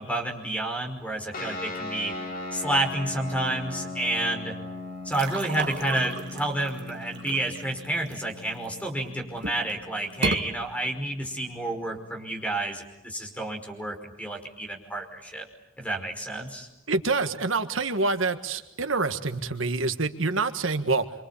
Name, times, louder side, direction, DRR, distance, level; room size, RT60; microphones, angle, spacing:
voice 1, 0.0-2.1 2.5-4.5 5.0-15.5 15.8-16.7, right 1 dB, 5° left, 3 dB, 5.3 m, -30 dB
sound 1, 1.3-12.2, left 2 dB, 45° left, 4.6 m, -39 dB
sound 2, 5.1-8.9 9.3-9.7 10.1-10.4, right 3 dB, 60° right, 2.1 m, -34 dB
voice 2, 16.9-21.0, right 3 dB, 80° right, 8 dB, 1.7 m, -26 dB
27.0 x 25.5 x 8.6 m, 0.92 s
head